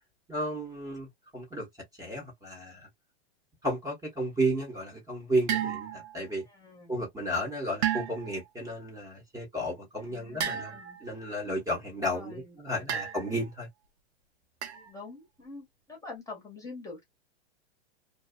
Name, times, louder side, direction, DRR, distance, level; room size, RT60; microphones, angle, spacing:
voice 1, 0.3-1.7 2.0-2.9 3.6-6.5 6.9-13.7, right 1 dB, 10° right, 1.1 m, -33 dB
sound 1, 5.5-6.2 7.8-8.4 10.4-11.1 12.9-13.5 14.6-14.9, right 9 dB, 85° right, 0.7 m, -32 dB
voice 2, 6.5-6.9 10.0-11.0 12.1-12.9 14.8-17.0, left 3 dB, 10° left, 1.1 m, -46 dB
2.7 x 2.3 x 2.3 m
hypercardioid pair, 135°, 32 cm